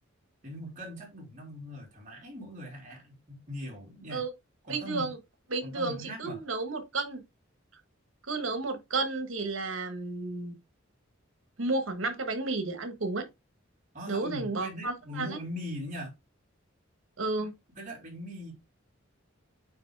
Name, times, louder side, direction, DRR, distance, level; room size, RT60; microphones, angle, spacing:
voice 1, 0.4-4.2 4.7-5.1 5.6-6.4 13.9-16.1 17.4-17.5 17.8-18.5, left 1 dB, 40° right, 3.3 m, -40 dB
voice 2, 4.7-5.2 5.5-7.2 8.3-10.6 11.6-13.2 14.1-15.4 17.2-17.5, right 3 dB, 75° right, 1.4 m, -32 dB
8.8 x 3.2 x 3.5 m
head